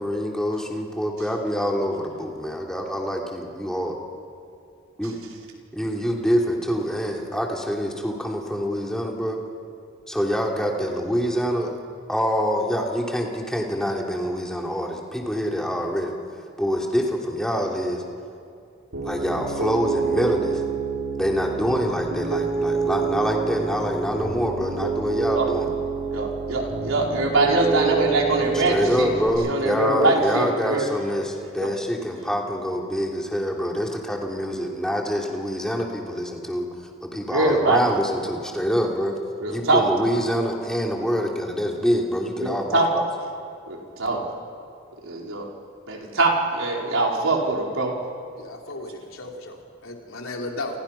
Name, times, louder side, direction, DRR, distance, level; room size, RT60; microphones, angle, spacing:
voice 1, 0.0-3.9 5.0-5.1 5.7-9.4 10.1-11.7 12.1-16.1 16.6-18.0 19.0-20.6 21.1-25.7 28.5-36.7 37.0-39.1 39.5-43.1, equal, 5° left, 0 dB, 2.9 m, -25 dB
Piano, 18.9-29.3, right 5 dB, 70° right, 6.0 m, -27 dB
voice 2, 23.4-23.8 25.3-25.5 26.1-29.1 29.4-30.9 31.6-31.7 37.3-37.8 39.4-39.9 42.4-42.9 43.7-44.2 45.0-45.4 45.9-47.9, right 2 dB, 90° right, -1 dB, 4.6 m, -23 dB
voice 3, 48.4-50.8, left 2 dB, 85° left, 1 dB, 3.7 m, -35 dB
28.5 x 28.5 x 5.9 m, 2.4 s
head